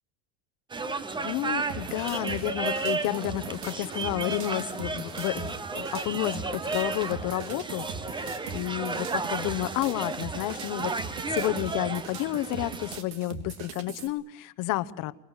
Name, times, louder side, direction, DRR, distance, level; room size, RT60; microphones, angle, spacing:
sound 1, 0.7-13.0, right 3 dB, 10° right, 0.9 m, -33 dB
voice 1, 1.2-7.9 8.2-8.3 8.5-15.1, left 16 dB, 45° left, 15 dB, 1.1 m, -31 dB
sound 2, 1.7-14.1, right 6 dB, 75° right, 3.5 m, -41 dB
25.5 x 22.0 x 8.2 m, 0.83 s
cardioid pair, 170°, 43 cm